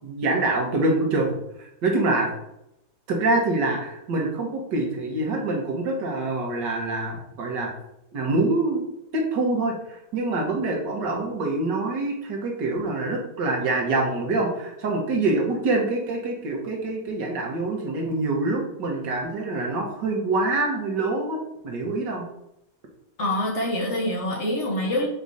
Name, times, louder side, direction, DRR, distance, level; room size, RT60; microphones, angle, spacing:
voice 1, 0.0-2.3 3.1-7.7 8.1-8.8 9.1-21.4 21.6-22.2, right 2 dB, 75° right, 1 dB, 1.9 m, -25 dB
voice 2, 23.2-25.1, left 1 dB, 45° left, 0 dB, 1.3 m, -25 dB
5.3 x 4.8 x 4.1 m, 0.84 s
omnidirectional pair, 1.9 m